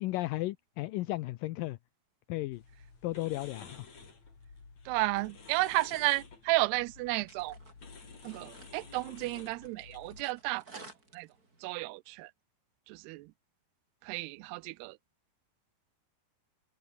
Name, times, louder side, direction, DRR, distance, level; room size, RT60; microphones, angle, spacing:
voice 1, 0.0-1.8 2.3-2.6 3.0-3.9, left 18 dB, 80° left, 2.1 m, -34 dB
sound 1, 2.5-10.2, left 4 dB, 40° left, 6.2 m, -52 dB
voice 2, 4.9-7.6 8.2-10.8 11.1-11.3 11.6-12.3 12.9-13.3 14.0-15.0, right 21 dB, 85° right, 2.7 m, -32 dB
sound 2, 6.7-11.7, right 2 dB, 20° right, 5.6 m, -56 dB
open air
omnidirectional pair, 4.7 m